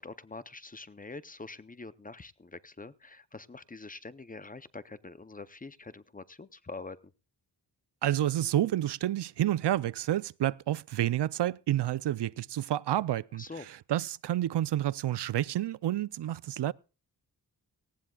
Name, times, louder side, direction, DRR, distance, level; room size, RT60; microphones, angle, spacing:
voice 1, 0.0-7.1 13.3-13.7, left 3 dB, 20° left, 0.6 m, -45 dB
voice 2, 8.0-16.7, right 12 dB, 85° right, 0.5 m, -29 dB
18.5 x 17.5 x 2.3 m
wide cardioid pair, 165°, 40 cm